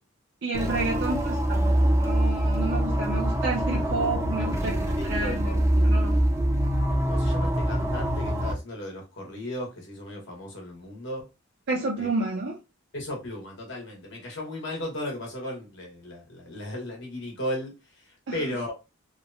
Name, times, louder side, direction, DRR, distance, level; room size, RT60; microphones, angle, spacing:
voice 1, 0.4-6.2 11.7-12.6 18.3-18.6, right 3 dB, 60° right, 0.5 m, -30 dB
sound 1, 0.5-8.5, right 1 dB, 15° right, 0.5 m, -24 dB
voice 2, 3.7-4.1 4.4-5.6 7.0-11.3 12.0-12.1 12.9-18.7, left 1 dB, 65° left, 1.2 m, -36 dB
2.9 x 2.1 x 2.6 m
head